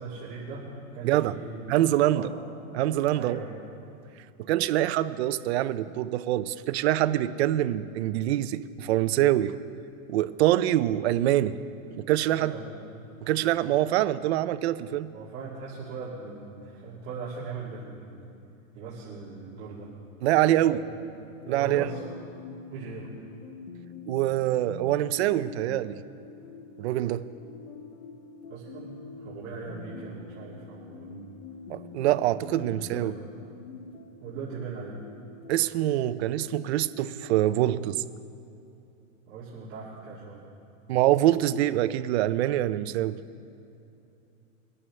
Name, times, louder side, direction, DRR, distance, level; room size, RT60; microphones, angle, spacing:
voice 1, 0.0-1.6 2.1-2.3 3.1-3.6 12.3-12.8 15.1-18.1 18.7-19.9 20.7-20.9 21.5-22.2 22.7-23.1 28.5-31.4 32.4-33.1 34.2-35.0 39.3-40.5, right 4 dB, 35° right, -9 dB, 2.5 m, -39 dB
voice 2, 1.7-2.2 2.7-3.4 4.4-9.5 10.1-11.6 11.9-12.5 13.2-15.1 20.2-20.8 21.5-21.8 24.1-26.0 26.8-27.2 31.7-33.1 35.5-38.0 40.9-43.2, right 13 dB, 50° right, 13 dB, 0.5 m, -25 dB
sound 1, 20.8-37.7, left 4 dB, 85° left, 1.1 m, -46 dB
22.5 x 11.0 x 3.3 m, 2.7 s
supercardioid pair, 160°, 42 cm